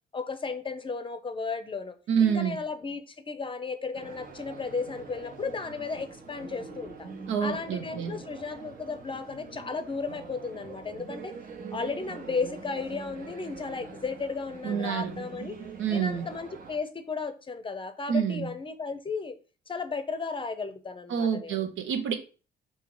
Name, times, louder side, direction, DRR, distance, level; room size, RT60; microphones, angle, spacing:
voice 1, 0.1-2.0 2.2-7.1 7.4-11.3 11.7-15.6 15.9-19.4 19.7-21.7, left 4 dB, 25° left, 9 dB, 0.6 m, -34 dB
voice 2, 2.1-2.6 7.3-8.2 14.6-15.1 15.8-16.3 18.1-18.5 21.1-22.1, right 7 dB, 80° right, 6 dB, 0.8 m, -27 dB
sound 1, 3.9-16.8, right 4 dB, 45° right, 0.9 m, -43 dB
3.6 x 2.8 x 4.7 m, 0.36 s
cardioid pair, 90°, 20 cm